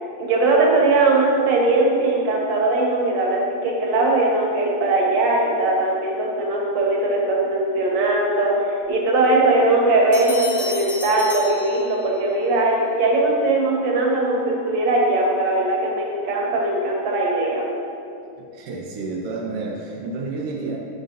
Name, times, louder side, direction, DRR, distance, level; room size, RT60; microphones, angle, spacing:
voice 1, 0.2-17.7, right 2 dB, 60° right, -2 dB, 2.1 m, -20 dB
sound 1, 10.1-12.4, left 3 dB, 50° left, 1.9 m, -34 dB
voice 2, 18.5-20.8, right 3 dB, 85° right, -2 dB, 1.3 m, -30 dB
14.5 x 5.3 x 2.7 m, 2.5 s
omnidirectional pair, 4.0 m